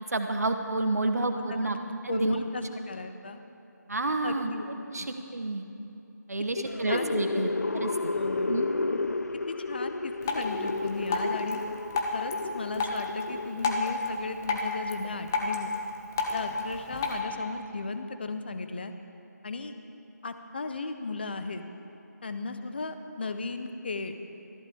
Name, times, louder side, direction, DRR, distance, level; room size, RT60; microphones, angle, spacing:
voice 1, 0.1-1.8 2.0-2.4 3.9-4.5 4.9-5.0 5.3-5.7 6.3-8.1 8.5-8.7, right 2 dB, 55° right, 6 dB, 1.2 m, -29 dB
voice 2, 1.5-3.4 4.2-5.1 6.6-7.0 8.1-8.6 9.5-11.6 12.1-15.7 16.3-18.9 19.4-19.7 20.2-21.6 22.2-24.2, left 3 dB, 35° left, 8 dB, 0.8 m, -36 dB
sound 1, 6.7-13.9, left 3 dB, 60° left, 0.5 m, -32 dB
Drip, 10.2-17.2, left 3 dB, 10° left, 0.5 m, -32 dB
19.5 x 14.0 x 3.6 m, 2.8 s
figure-of-eight pair, 160°, 10 cm